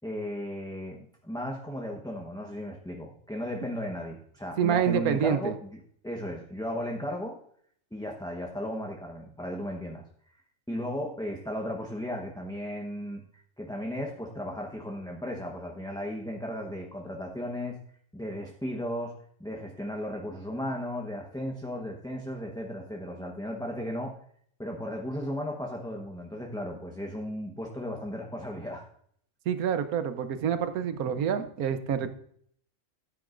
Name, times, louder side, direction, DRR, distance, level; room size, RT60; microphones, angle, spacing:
voice 1, 0.0-5.8 6.0-7.4 7.9-10.0 10.7-13.2 13.6-17.8 18.1-19.1 19.4-24.1 24.6-28.8, equal, 5° left, -1 dB, 0.8 m, -35 dB
voice 2, 4.6-5.5 29.5-32.1, right 8 dB, 75° right, 10 dB, 1.3 m, -27 dB
14.0 x 9.3 x 2.5 m, 0.63 s
omnidirectional pair, 1.6 m